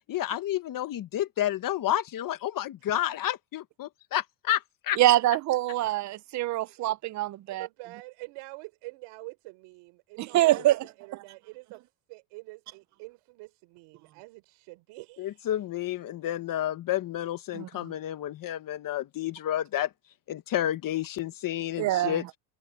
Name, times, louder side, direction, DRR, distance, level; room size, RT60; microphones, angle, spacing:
voice 1, 0.1-5.0 15.2-19.9 20.3-22.2, left 12 dB, 40° left, 1.4 m, -30 dB
voice 2, 5.0-7.7 10.2-10.8 17.5-17.9 21.8-22.2, right 15 dB, 35° right, 0.5 m, -25 dB
voice 3, 7.5-15.5, right 24 dB, 70° right, 4.0 m, -46 dB
cardioid pair, 130°, 50 cm